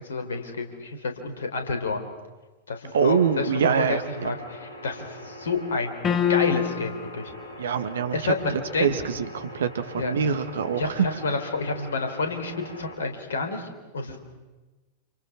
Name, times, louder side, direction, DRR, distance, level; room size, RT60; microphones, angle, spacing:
voice 1, 0.0-2.1 2.7-5.9 6.3-7.3 8.1-8.9 9.9-10.1 10.7-13.7 13.9-14.2, left 3 dB, 65° left, 6 dB, 4.0 m, -29 dB
voice 2, 2.9-4.3 7.6-11.1, right 7 dB, 65° right, 10 dB, 1.9 m, -25 dB
sound 1, 2.9-13.0, equal, 85° right, 4.7 m, -42 dB
sound 2, 6.0-7.1, left 9 dB, 25° left, 2.1 m, -24 dB
29.5 x 28.5 x 6.1 m, 1.2 s
figure-of-eight pair, 90°, 0 cm